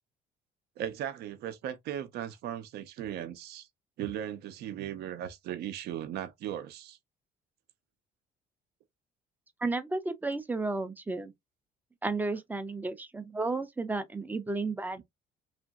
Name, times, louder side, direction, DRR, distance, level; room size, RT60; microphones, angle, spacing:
voice 1, 0.8-3.7 4.0-7.0, right 10 dB, 70° right, 0.5 m, -37 dB
voice 2, 9.6-11.3 12.0-15.0, right 3 dB, 10° right, 0.4 m, -33 dB
2.9 x 2.5 x 2.3 m
cardioid pair, 110°, 17 cm